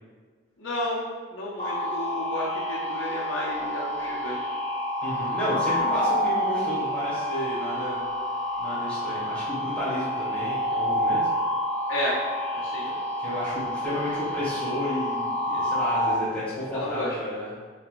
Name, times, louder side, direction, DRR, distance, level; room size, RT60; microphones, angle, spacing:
voice 1, 0.6-1.0 1.3-4.4 11.9-12.2 12.5-12.9 16.7-17.2, left 1 dB, 80° left, -6 dB, 0.6 m, -32 dB
sound 1, 1.6-16.1, left 1 dB, 35° left, 1.0 m, -28 dB
voice 2, 5.0-8.0 8.6-11.2 12.8-12.9 13.2-17.5, equal, 10° left, -13 dB, 1.5 m, -32 dB
3.1 x 3.0 x 2.5 m, 1.5 s
head